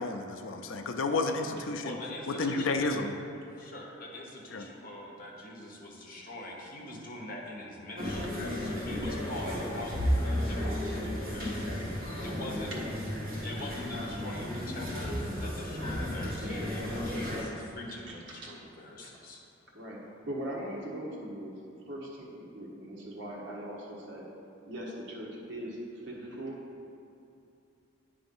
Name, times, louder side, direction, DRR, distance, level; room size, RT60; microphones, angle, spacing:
voice 1, 0.0-2.0 2.4-3.1 4.5-4.6, left 3 dB, 70° left, 6 dB, 0.5 m, -31 dB
voice 2, 1.4-3.0 3.5-11.8 12.2-12.7 13.4-19.4, left 1 dB, 45° left, -2 dB, 1.1 m, -43 dB
sound 1, 8.0-17.4, equal, 45° right, 1.7 m, -33 dB
voice 3, 12.8-13.2 16.9-17.6 18.3-18.5 19.0-19.1 19.7-21.5 21.8-24.2 24.7-26.6, right 1 dB, 60° right, -4 dB, 1.4 m, -41 dB
9.6 x 3.4 x 5.4 m, 2.7 s
head